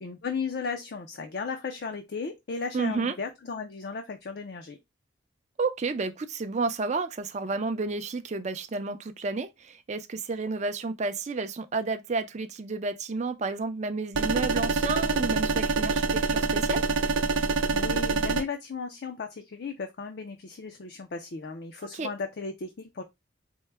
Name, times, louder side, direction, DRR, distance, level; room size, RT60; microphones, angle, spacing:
voice 1, 0.0-4.8 17.7-23.0, left 4 dB, 60° left, 0.5 m, -35 dB
voice 2, 2.7-3.1 5.6-16.8 21.9-22.1, right 3 dB, 35° right, 0.4 m, -31 dB
sound 1, 14.1-18.4, right 4 dB, 85° right, 0.5 m, -26 dB
4.5 x 2.1 x 3.2 m
head